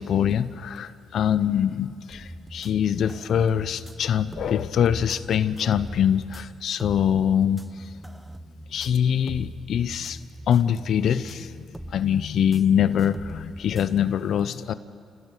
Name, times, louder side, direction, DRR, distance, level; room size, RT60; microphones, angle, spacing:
voice 1, 0.0-7.9 8.7-10.2 10.5-14.7, left 9 dB, 65° left, 14 dB, 0.7 m, -24 dB
sound 1, 2.1-14.0, right 1 dB, 10° right, 0.7 m, -42 dB
29.5 x 16.0 x 9.1 m, 2.5 s
cardioid pair, 90°, 0 cm